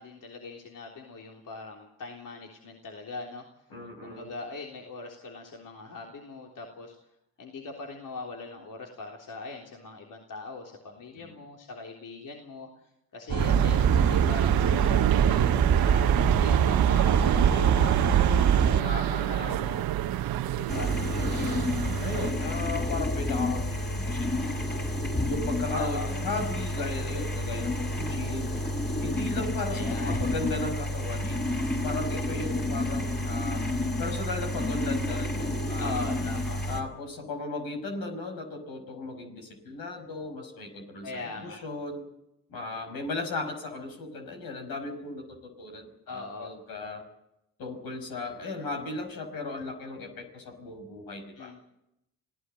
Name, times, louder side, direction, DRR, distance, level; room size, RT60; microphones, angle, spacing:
voice 1, 0.0-3.4 4.0-7.0 7.4-16.1 16.4-19.8 20.5-20.9 21.3-21.7 25.7-26.1 29.7-30.3 35.8-36.6 41.0-41.6 46.1-46.5 51.4-51.6, left 3 dB, 60° left, 0 dB, 3.6 m, -41 dB
voice 2, 3.7-4.3 11.2-11.3 18.8-19.7 21.2-21.7 22.0-24.8 25.3-28.7 29.0-31.4 31.8-33.6 34.0-36.1 36.7-42.0 42.5-47.0 47.6-51.5, left 2 dB, 75° left, 5 dB, 5.7 m, -36 dB
sound 1, 13.3-18.8, right 7 dB, 50° right, 1.9 m, -23 dB
sound 2, 13.4-22.3, right 12 dB, 75° right, 1.2 m, -27 dB
sound 3, 20.7-36.8, left 1 dB, 30° left, 6.4 m, -30 dB
26.5 x 17.0 x 7.8 m, 0.85 s
supercardioid pair, 55°, 36 cm